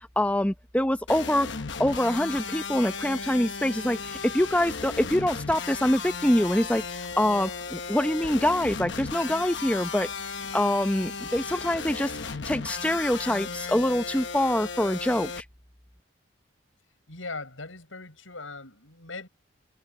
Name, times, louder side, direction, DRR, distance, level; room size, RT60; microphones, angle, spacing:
voice 1, 0.2-1.5 1.8-10.1 10.5-15.3, left 1 dB, 5° left, 0.8 m, -25 dB
sound 1, 1.1-15.4, left 5 dB, 60° left, 1.1 m, -35 dB
voice 2, 17.1-19.3, left 3 dB, 80° left, 7.3 m, -39 dB
head